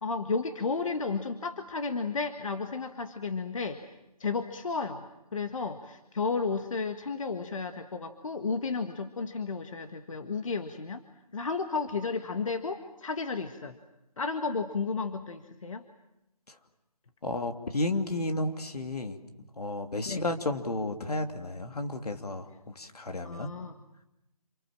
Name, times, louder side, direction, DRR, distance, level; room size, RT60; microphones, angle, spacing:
voice 1, 0.0-3.8 4.2-5.1 5.3-11.0 11.3-13.8 14.2-15.8 20.1-20.2 23.2-23.7, left 4 dB, 55° left, 7 dB, 1.7 m, -33 dB
voice 2, 17.2-19.2 19.6-23.5, left 2 dB, 75° left, 5 dB, 2.8 m, -32 dB
28.0 x 26.0 x 7.5 m, 0.88 s
figure-of-eight pair, 165°, 20 cm